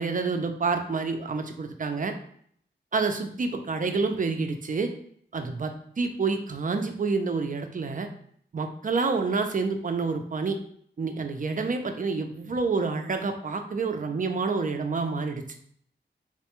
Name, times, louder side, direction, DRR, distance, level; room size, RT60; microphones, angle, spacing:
voice 1, 0.0-2.1 2.9-4.9 5.3-5.7 6.0-8.1 8.5-10.6 11.0-15.4, right 4 dB, 45° right, 6 dB, 0.4 m, -28 dB
4.1 x 2.2 x 2.9 m, 0.62 s
wide cardioid pair, 120°, 20 cm